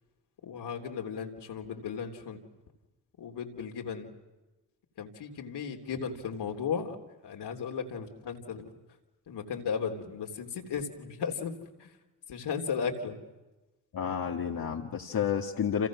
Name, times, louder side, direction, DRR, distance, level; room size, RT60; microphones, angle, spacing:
voice 1, 0.4-2.4 3.2-4.1 5.0-7.0 7.2-8.7 9.3-11.5 11.8-11.9 12.3-13.2, left 6 dB, 70° left, 2 dB, 3.4 m, -35 dB
voice 2, 13.9-15.9, left 8 dB, 55° left, 1 dB, 2.0 m, -30 dB
30.0 x 27.5 x 6.3 m, 1.1 s
supercardioid pair, 60°, 42 cm